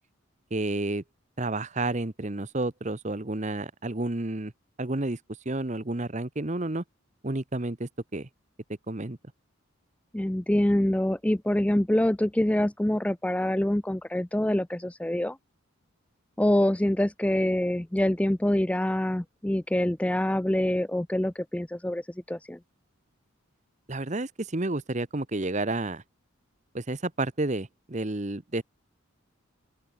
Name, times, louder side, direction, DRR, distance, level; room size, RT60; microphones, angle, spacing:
voice 1, 0.5-1.0 1.4-4.5 4.8-5.2 5.4-6.8 7.2-8.3 8.9-9.2 23.9-26.0 26.7-28.6, right 2 dB, 35° right, 1.0 m, -30 dB
voice 2, 10.1-15.4 16.4-22.0 22.3-22.6, left 1 dB, 5° left, 0.4 m, -25 dB
open air
head